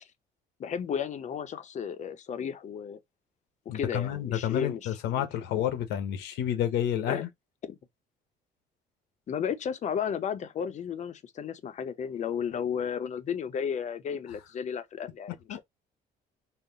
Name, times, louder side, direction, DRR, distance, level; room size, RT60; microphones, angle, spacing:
voice 1, 0.6-3.0 3.7-5.3 7.1-7.2 7.6-7.8 9.3-15.6, left 7 dB, 45° left, 0.6 m, -33 dB
voice 2, 3.7-7.3 15.5-15.6, left 10 dB, 85° left, 0.9 m, -30 dB
3.9 x 2.1 x 3.8 m
cardioid pair, 110°, 17 cm